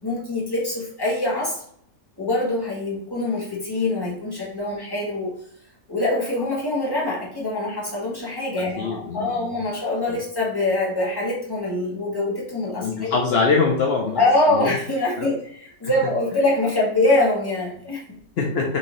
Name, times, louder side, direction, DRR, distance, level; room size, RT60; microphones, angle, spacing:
voice 1, 0.0-1.6 2.2-5.3 5.9-13.2 14.1-18.2, left 2 dB, 15° left, -5 dB, 1.2 m, -24 dB
voice 2, 8.6-9.5 10.1-10.2 12.8-14.2 14.5-14.7 15.2-15.3 18.4-18.8, left 4 dB, 70° left, -1 dB, 0.5 m, -23 dB
5.8 x 2.7 x 3.0 m, 0.65 s
omnidirectional pair, 1.8 m